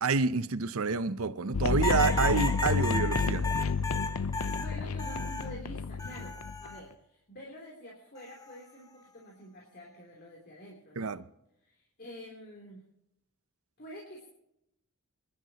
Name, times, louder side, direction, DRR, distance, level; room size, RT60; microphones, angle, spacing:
voice 1, 0.0-3.5 11.0-11.2, right 4 dB, 70° right, 0.7 m, -28 dB
sound 1, 1.5-6.7, left 5 dB, 80° left, 0.7 m, -30 dB
sound 2, 1.8-5.5 6.0-6.8 8.2-8.6, left 2 dB, 15° left, 1.3 m, -35 dB
voice 2, 4.6-6.4 6.6-11.2 11.6-12.8 13.8-14.3, equal, 50° left, 3.4 m, -48 dB
25.5 x 12.0 x 3.0 m
head